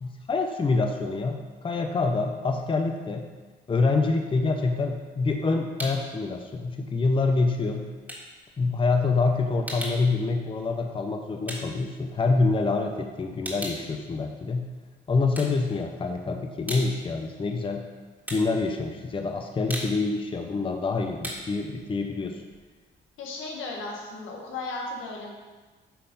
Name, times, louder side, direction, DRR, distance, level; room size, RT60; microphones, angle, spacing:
voice 1, 0.0-3.3 3.7-7.9 8.6-14.7 15.1-17.9 18.3-22.4, left 3 dB, 25° left, 4 dB, 0.6 m, -26 dB
sound 1, 5.8-6.2 6.5-12.7 13.0-14.8 15.2-16.1 16.4-23.1, equal, 10° right, 1.9 m, -40 dB
voice 2, 23.2-25.3, left 3 dB, 85° left, -2 dB, 1.7 m, -35 dB
8.8 x 3.6 x 5.3 m, 1.3 s
cardioid pair, 90°, 20 cm